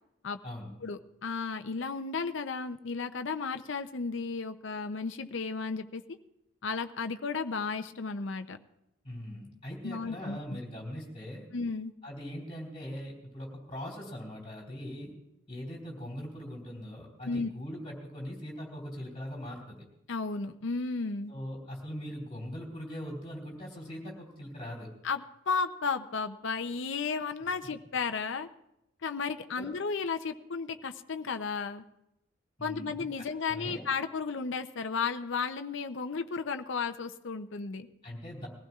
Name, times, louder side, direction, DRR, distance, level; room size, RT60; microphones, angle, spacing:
voice 1, 0.8-6.0 6.6-8.6 9.8-10.6 11.5-11.9 17.2-17.5 20.1-21.3 25.0-28.5 29.0-31.8 32.6-37.9, left 4 dB, 60° left, 8 dB, 0.6 m, -34 dB
voice 2, 9.0-11.5 12.0-15.1 15.5-19.7 21.3-24.9 29.5-29.7 32.6-33.9 38.0-38.5, equal, 25° left, -2 dB, 3.8 m, -41 dB
21.5 x 15.5 x 2.4 m, 0.87 s
head